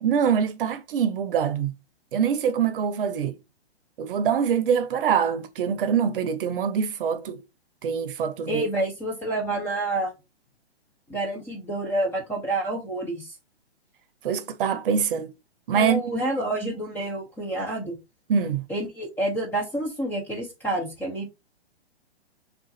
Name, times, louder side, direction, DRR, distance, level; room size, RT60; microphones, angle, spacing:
voice 1, 0.0-1.7 2.1-3.4 4.0-7.4 7.8-8.6 14.2-15.3 15.7-16.0 18.3-18.7, right 7 dB, 55° right, 0.7 m, -24 dB
voice 2, 8.5-10.1 11.1-13.3 15.7-18.0 18.7-21.3, right 1 dB, 5° left, 0.4 m, -28 dB
3.7 x 2.4 x 3.9 m
hypercardioid pair, 135°, 33 cm